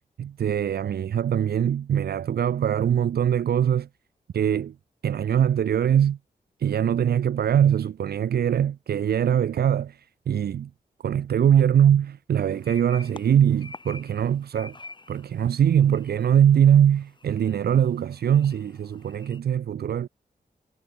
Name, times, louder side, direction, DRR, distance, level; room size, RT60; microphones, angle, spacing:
voice 1, 0.2-3.9 4.3-4.7 5.0-6.2 6.6-10.7 11.0-14.8 15.1-20.1, right 9 dB, 75° right, 0.6 m, -22 dB
sound 1, 12.5-19.4, left 3 dB, 30° left, 3.9 m, -47 dB
wide cardioid pair, 95°, 16 cm